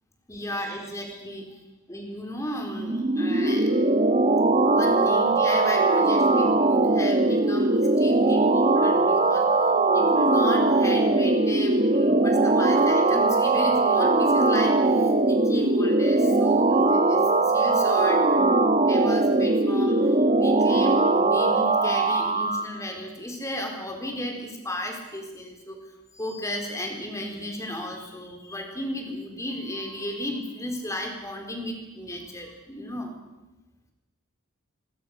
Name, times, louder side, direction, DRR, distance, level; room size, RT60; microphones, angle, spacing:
voice 1, 0.3-3.7 4.6-25.8 26.1-33.1, left 1 dB, 15° left, 3 dB, 4.2 m, -34 dB
sound 1, 2.7-22.7, right 2 dB, 35° right, 1.5 m, -21 dB
26.0 x 22.5 x 6.6 m, 1.0 s
head